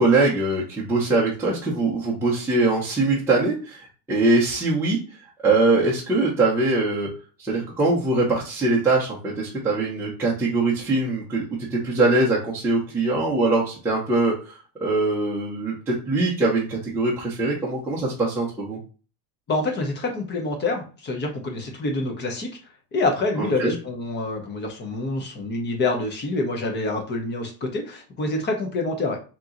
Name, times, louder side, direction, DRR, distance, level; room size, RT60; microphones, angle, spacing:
voice 1, 0.0-5.0 5.4-7.1 7.4-11.4 11.7-18.8 23.4-23.7, right 2 dB, 5° right, -6 dB, 0.7 m, -22 dB
voice 2, 19.5-22.5 22.9-29.2, left 2 dB, 20° left, 3 dB, 0.9 m, -26 dB
3.7 x 3.0 x 3.8 m, 0.36 s
supercardioid pair, 145°, 48 cm